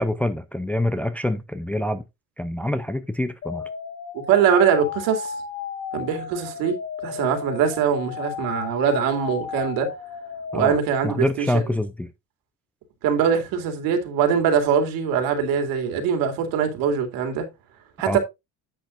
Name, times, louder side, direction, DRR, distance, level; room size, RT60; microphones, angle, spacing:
voice 1, 0.0-2.0 2.4-3.7 10.5-10.8 11.0-12.1 18.1-18.2, left 1 dB, 5° left, 0.5 m, -25 dB
sound 1, 3.4-10.8, left 6 dB, 45° left, 1.6 m, -34 dB
voice 2, 4.1-5.3 5.9-6.8 7.0-9.9 10.5-11.6 13.0-17.5 18.0-18.2, right 7 dB, 75° right, 2.6 m, -22 dB
10.5 x 8.0 x 2.5 m
cardioid pair, 140°, 35 cm